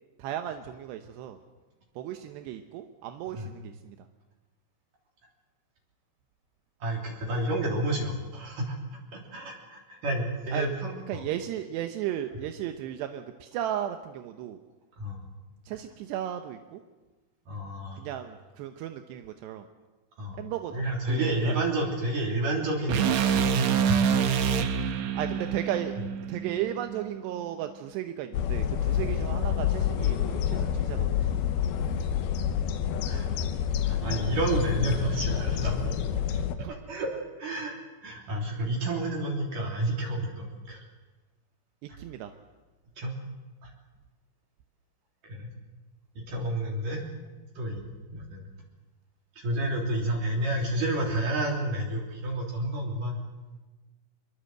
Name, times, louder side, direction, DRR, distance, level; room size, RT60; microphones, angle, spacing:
voice 1, 0.2-1.4 2.0-4.1 10.5-10.7 11.1-14.6 15.7-16.8 17.9-19.7 20.4-21.6 25.1-26.0 26.3-31.3 36.6-36.7 41.8-42.3, right 11 dB, 85° right, 7 dB, 3.1 m, -35 dB
voice 2, 6.8-8.8 9.1-11.2 15.0-15.2 17.5-18.0 20.2-20.4 20.7-24.0 33.0-33.4 33.8-36.0 36.3-36.4 36.9-37.8 38.0-40.8 43.0-43.2 45.2-45.5 46.2-47.0 47.6-47.8 48.1-48.5 49.4-53.2, right 1 dB, 55° right, -1 dB, 4.7 m, -30 dB
sound 1, 22.9-27.1, right 7 dB, 70° right, 1.7 m, -26 dB
sound 2, 28.3-36.6, left 9 dB, 70° left, 2.9 m, -28 dB
24.0 x 23.0 x 7.9 m, 1.2 s
omnidirectional pair, 4.8 m